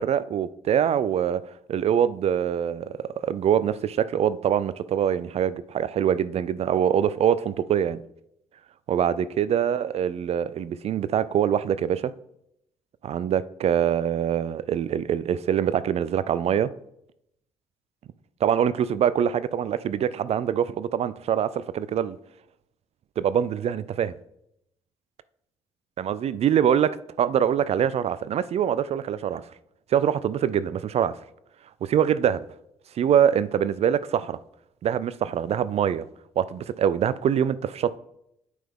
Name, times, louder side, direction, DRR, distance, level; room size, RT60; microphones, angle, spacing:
voice 1, 0.0-1.4 1.7-8.0 8.9-12.1 13.0-16.7 18.4-22.2 23.2-24.1 26.0-29.4 29.9-31.1 31.8-32.4 33.0-34.4 34.8-36.1 36.4-38.0, right 9 dB, 45° right, 0.4 m, -24 dB
8.6 x 5.5 x 3.5 m
figure-of-eight pair, 40°, 15 cm